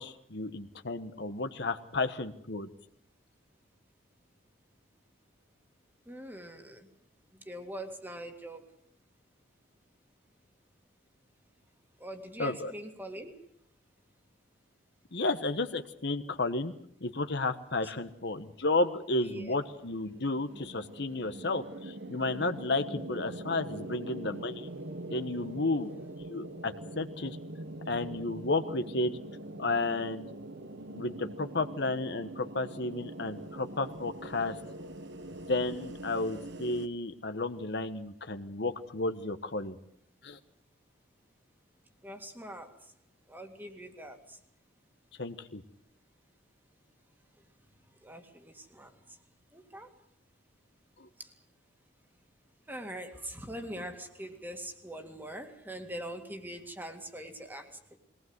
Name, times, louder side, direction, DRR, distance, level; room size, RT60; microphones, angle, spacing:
voice 1, 0.0-2.7 12.4-12.7 15.1-16.7 17.0-24.7 25.1-25.9 26.3-27.4 27.9-29.2 29.6-30.3 30.9-34.6 35.5-39.8 40.2-40.4 45.2-45.6 51.0-51.1, left 2 dB, 65° left, 9 dB, 1.3 m, -32 dB
voice 2, 6.1-6.9 7.5-8.7 12.0-13.4 17.8-17.9 19.2-19.5 42.0-42.7 43.3-44.4 48.0-48.9 49.5-49.9 51.2-51.3 52.7-58.0, right 1 dB, 10° right, 5 dB, 2.1 m, -43 dB
sound 1, 19.3-36.9, right 1 dB, 65° right, 1.3 m, -43 dB
21.5 x 19.0 x 8.0 m, 0.70 s
head